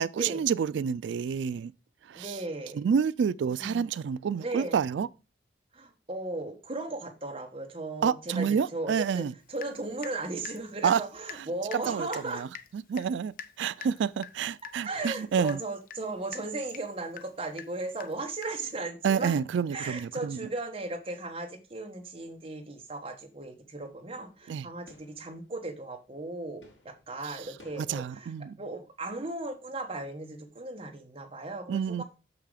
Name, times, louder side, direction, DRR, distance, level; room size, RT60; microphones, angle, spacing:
voice 1, 0.0-1.7 2.1-2.3 2.8-5.1 8.0-9.3 10.8-11.0 11.7-12.5 12.7-15.6 19.0-20.4 24.5-24.7 27.2-27.4 27.9-28.6 31.7-32.0, right 7 dB, 85° right, 0.3 m, -28 dB
voice 2, 2.1-2.8 3.5-3.9 4.4-4.8 5.7-12.4 14.8-19.4 19.7-28.3 28.6-32.0, right 2 dB, 30° right, 1.3 m, -36 dB
Water tap faucet / Drip, 9.6-10.2 10.4-18.8, left 7 dB, 50° left, 0.6 m, -46 dB
sound 1, 21.6-22.0 22.2-28.1, left 1 dB, 80° left, 3.0 m, -60 dB
6.6 x 5.8 x 4.9 m
head